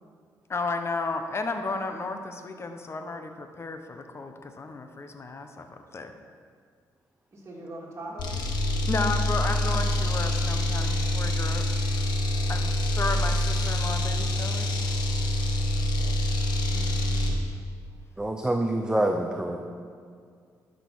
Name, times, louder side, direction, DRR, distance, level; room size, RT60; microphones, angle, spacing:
voice 1, 0.5-6.1 8.8-11.6 12.5-14.7 16.7-17.4, left 3 dB, 35° left, 6 dB, 1.1 m, -33 dB
voice 2, 7.3-8.3 12.3-13.0 15.5-16.2, right 2 dB, 40° right, -4 dB, 3.3 m, -43 dB
sound 1, 8.2-17.4, left 1 dB, 75° left, 1.5 m, -26 dB
voice 3, 18.2-19.6, right 1 dB, 10° right, 3 dB, 0.8 m, -26 dB
11.5 x 6.9 x 6.2 m, 2.1 s
cardioid pair, 80°, 7 cm